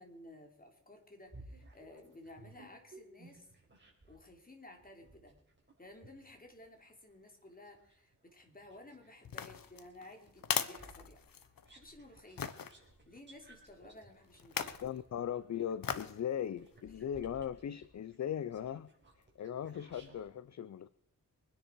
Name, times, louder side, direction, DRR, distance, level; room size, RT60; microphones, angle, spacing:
voice 1, 0.0-3.5 4.1-5.4 5.8-11.2 11.7-12.5 13.1-14.8, left 1 dB, 25° left, 3 dB, 3.1 m, -55 dB
sound 1, 1.3-4.2 4.8-9.1 9.6-20.3, right 2 dB, 35° right, 4.5 m, -59 dB
sound 2, 9.2-11.7 12.4-12.7 14.4-14.9 15.8-16.2 16.7-16.8, left 8 dB, 85° left, 1.0 m, -38 dB
voice 2, 14.8-18.9 19.4-20.9, left 9 dB, 55° left, 16 dB, 0.5 m, -39 dB
24.0 x 10.0 x 4.6 m, 0.73 s
wide cardioid pair, 110°, 34 cm